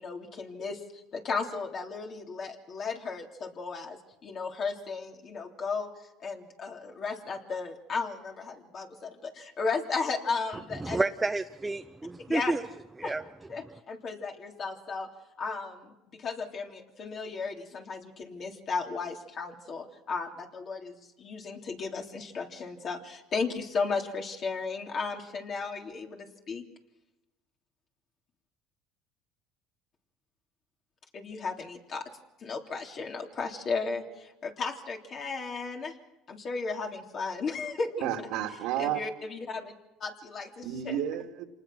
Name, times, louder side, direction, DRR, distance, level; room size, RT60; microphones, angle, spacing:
voice 1, 0.0-5.9 6.2-11.0 12.3-12.5 13.0-13.2 13.5-15.1 15.4-26.7 31.1-32.0 32.4-36.0 36.3-38.1 38.8-39.7 40.0-41.0, left 4 dB, 40° left, 2 dB, 3.3 m, -35 dB
voice 2, 10.8-12.6 13.0-13.2, right 3 dB, 15° right, 8 dB, 0.7 m, -30 dB
voice 3, 38.0-39.0 40.6-41.4, right 11 dB, 75° right, 4 dB, 2.6 m, -31 dB
27.0 x 19.5 x 6.2 m, 1.0 s
supercardioid pair, 100°, 0 cm